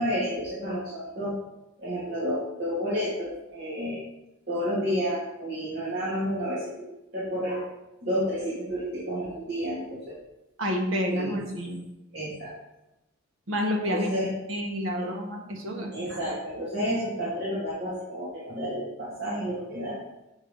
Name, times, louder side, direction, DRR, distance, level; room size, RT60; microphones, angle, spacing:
voice 1, 0.0-1.4 1.8-4.0 4.5-6.9 7.1-7.7 8.0-10.1 11.1-11.4 12.1-12.5 13.9-14.3 15.0-15.1 15.9-20.0, equal, 55° right, -9 dB, 2.5 m, -30 dB
voice 2, 10.6-11.8 13.5-16.2, equal, 90° right, 1 dB, 1.5 m, -29 dB
7.1 x 4.7 x 5.4 m, 0.93 s
head